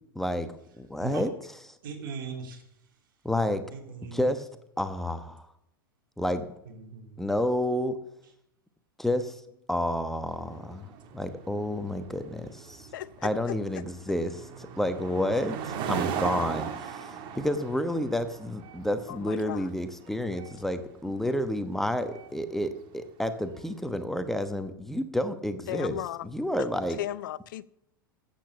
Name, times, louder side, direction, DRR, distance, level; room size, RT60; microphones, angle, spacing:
voice 1, 0.1-1.3 3.2-3.6 4.1-4.5 4.8-5.5 6.2-6.5 7.2-8.0 9.0-9.4 9.7-12.9 13.2-26.0 26.3-27.0, left 1 dB, 5° left, 9 dB, 1.1 m, -30 dB
voice 2, 1.8-2.6 3.7-4.3 6.6-7.3, right 5 dB, 65° right, 4 dB, 3.2 m, -39 dB
sound 1, 10.2-23.7, right 7 dB, 45° right, 1.9 m, -39 dB
voice 3, 12.9-13.5 19.1-19.7 21.0-21.1 25.7-26.3 26.6-27.6, left 13 dB, 60° left, 20 dB, 0.6 m, -36 dB
13.5 x 8.7 x 7.1 m, 0.80 s
figure-of-eight pair, 90°, 12 cm